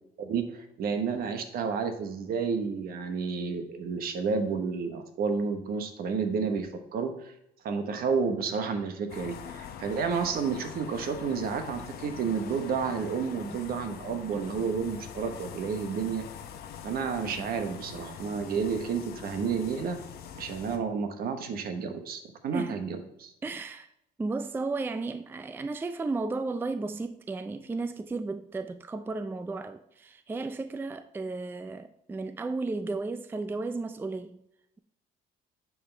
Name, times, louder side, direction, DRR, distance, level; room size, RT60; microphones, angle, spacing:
voice 1, 0.2-7.3 7.6-16.2 16.8-20.0 20.4-23.3, right 5 dB, 65° right, 1.1 m, -31 dB
sound 1, 9.1-20.8, left 8 dB, 65° left, 0.9 m, -43 dB
voice 2, 23.4-23.9 24.2-34.4, right 3 dB, 10° right, 0.4 m, -34 dB
9.9 x 4.8 x 3.3 m
cardioid pair, 110°, 17 cm